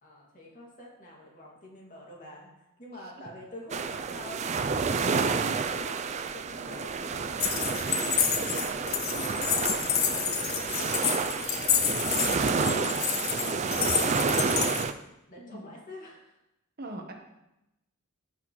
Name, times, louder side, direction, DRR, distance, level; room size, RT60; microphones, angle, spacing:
voice 1, 0.0-14.7 15.3-16.4, left 1 dB, 40° left, -3 dB, 2.3 m, -48 dB
sound 1, 3.7-14.9, right 5 dB, 35° right, 0.4 m, -29 dB
sound 2, 7.4-14.8, left 8 dB, 85° left, 0.9 m, -29 dB
voice 2, 15.4-15.8 16.8-17.1, right 1 dB, 50° right, 2 dB, 1.1 m, -41 dB
14.5 x 5.9 x 3.1 m, 0.90 s
head